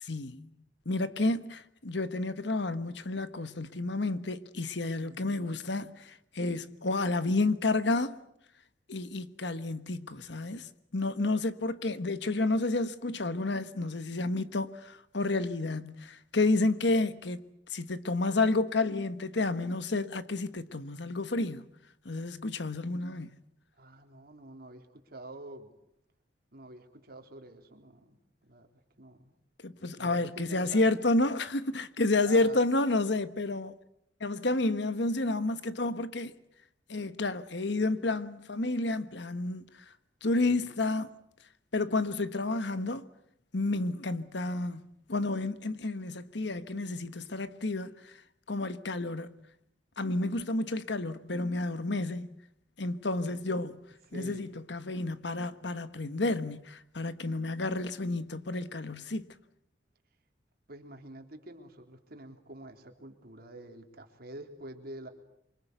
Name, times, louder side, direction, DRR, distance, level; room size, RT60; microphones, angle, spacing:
voice 1, 0.0-0.5 0.8-8.2 8.9-17.4 17.7-21.7 22.0-23.3 29.6-33.7 34.2-36.3 36.9-39.6 40.2-41.1 41.7-43.0 43.5-48.1 48.5-49.4 50.0-52.3 52.8-53.8 54.1-59.3, left 2 dB, 65° left, 1.3 m, -30 dB
voice 2, 5.0-5.4 23.8-25.8 26.5-28.7 29.0-29.3 30.0-30.9 32.2-32.7 40.4-40.8 54.1-54.5 60.7-65.1, right 1 dB, 55° right, 3.6 m, -47 dB
28.0 x 24.5 x 8.1 m
head